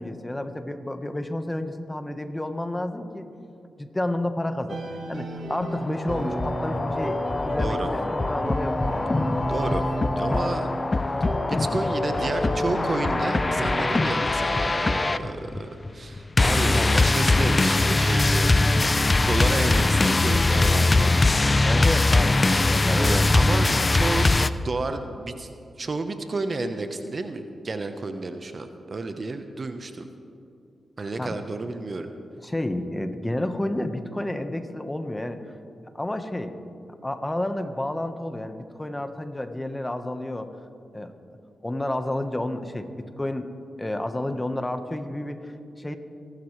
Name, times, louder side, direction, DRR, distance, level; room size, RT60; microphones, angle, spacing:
voice 1, 0.0-3.3 3.8-4.8 5.1-9.1 16.7-17.0 21.6-23.3 31.2-31.4 32.4-35.4 35.9-36.5 37.0-40.5 40.9-41.1 41.6-43.5 43.8-46.0, left 1 dB, 20° left, 8 dB, 1.3 m, -30 dB
sound 1, 4.7-13.9, right 2 dB, 70° right, 1.4 m, -34 dB
sound 2, 5.7-24.5, left 2 dB, 35° left, 0.6 m, -22 dB
voice 2, 7.6-7.9 9.5-9.9 10.2-10.7 11.5-18.5 18.9-21.2 22.9-25.5 25.8-30.1 31.0-32.1, right 3 dB, 50° right, 8 dB, 1.0 m, -31 dB
26.0 x 12.0 x 3.3 m, 2.5 s
supercardioid pair, 45°, 0 cm